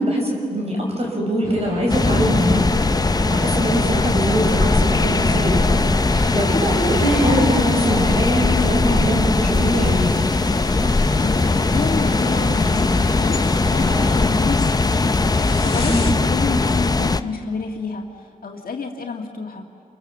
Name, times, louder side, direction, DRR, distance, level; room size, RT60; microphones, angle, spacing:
voice 1, 0.0-5.9 6.3-10.1 15.9-16.2, equal, 45° right, 0 dB, 5.6 m, -22 dB
sound 1, 1.4-14.2, left 1 dB, 20° right, 7.9 m, -30 dB
sound 2, 1.9-17.2, left 3 dB, 25° left, 0.6 m, -19 dB
sound 3, 9.4-16.1, left 3 dB, 45° left, 2.7 m, -37 dB
voice 2, 11.2-19.6, left 4 dB, 80° left, 2 dB, 1.9 m, -29 dB
30.0 x 23.5 x 7.3 m, 2.4 s
wide cardioid pair, 125°, 15 cm